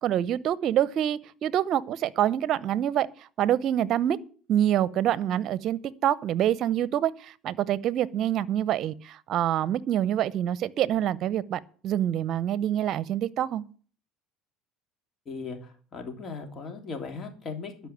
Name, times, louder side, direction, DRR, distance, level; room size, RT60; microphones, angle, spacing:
voice 1, 0.0-3.1 3.4-4.2 4.5-13.6, right 11 dB, 55° right, 0.7 m, -26 dB
voice 2, 15.2-17.9, left 4 dB, 40° left, 3.2 m, -38 dB
12.5 x 5.6 x 8.7 m
supercardioid pair, 90°, 0 cm